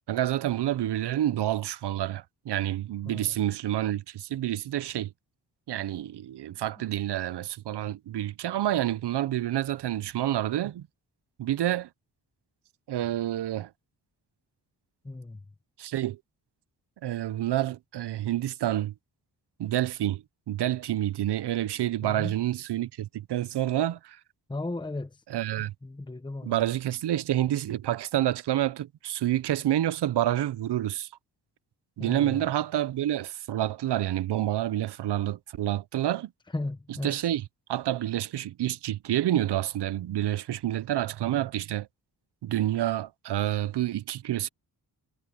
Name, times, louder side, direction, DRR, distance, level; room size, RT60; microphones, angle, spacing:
voice 1, 0.1-5.1 5.7-10.9 11.4-11.9 12.9-13.7 15.8-16.2 17.0-18.9 19.6-24.2 25.3-25.7 26.4-31.1 32.0-36.3 37.0-41.9 42.4-44.5, right 13 dB, 80° right, 0.7 m, -28 dB
voice 2, 15.0-15.4 22.0-22.3 24.5-25.1 25.8-26.5 32.0-32.4 36.5-37.2, left 2 dB, 10° left, 0.9 m, -35 dB
wide cardioid pair, 115°, 40 cm